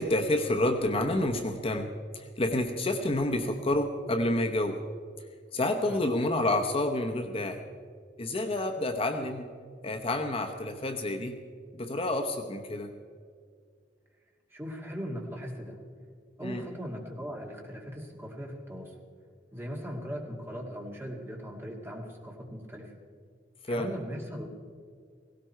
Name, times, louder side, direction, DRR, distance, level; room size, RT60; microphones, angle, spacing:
voice 1, 0.0-4.8 5.5-7.7 8.2-9.5 9.8-11.4 11.7-12.9 16.4-16.6 23.6-23.9, left 1 dB, 35° left, 5 dB, 0.9 m, -29 dB
voice 2, 14.5-15.8 16.4-18.9 19.5-22.9 23.7-24.5, equal, 15° right, 0 dB, 2.4 m, -39 dB
18.0 x 17.0 x 4.5 m, 2.1 s
head